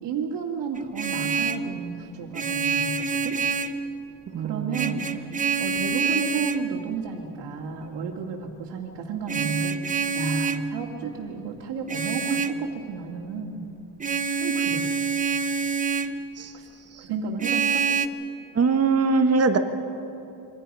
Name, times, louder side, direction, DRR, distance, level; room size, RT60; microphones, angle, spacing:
voice 1, 0.0-3.0 3.2-3.4 4.4-13.6 14.4-14.9 16.5-16.7 17.0-17.8, right 5 dB, 80° right, -2 dB, 2.6 m, -32 dB
Vehicle horn car horn honking, 0.7-1.7 2.3-3.8 4.7-6.7 9.3-10.7 11.9-12.6 14.0-16.2 17.4-18.1, right 5 dB, 20° right, 0.8 m, -26 dB
voice 2, 4.3-5.0 16.4-16.5 16.9-17.1 18.5-19.6, right 4 dB, 35° right, 7 dB, 1.4 m, -22 dB
28.0 x 24.0 x 5.6 m, 2.9 s
cardioid pair, 145°, 42 cm